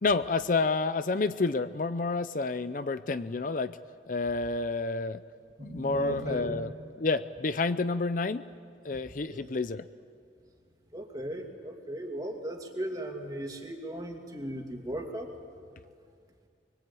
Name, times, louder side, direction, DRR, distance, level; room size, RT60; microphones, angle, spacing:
voice 1, 0.0-3.8 4.1-5.2 5.6-6.7 7.0-8.4 8.8-9.9, left 3 dB, 50° left, 12 dB, 0.5 m, -29 dB
voice 2, 5.6-6.6 9.2-9.6 10.9-15.3, right 1 dB, 20° right, 2 dB, 2.5 m, -37 dB
24.5 x 22.5 x 8.6 m, 2.2 s
head